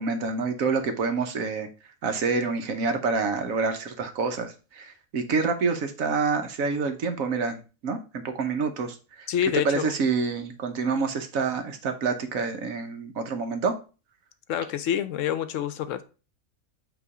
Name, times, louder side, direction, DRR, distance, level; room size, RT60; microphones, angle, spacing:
voice 1, 0.0-1.7 2.0-9.3 9.6-13.8, right 4 dB, 75° right, 8 dB, 1.3 m, -27 dB
voice 2, 9.3-9.9 14.5-16.0, left 10 dB, 70° left, 12 dB, 0.9 m, -27 dB
8.0 x 3.1 x 4.8 m, 0.34 s
omnidirectional pair, 1.5 m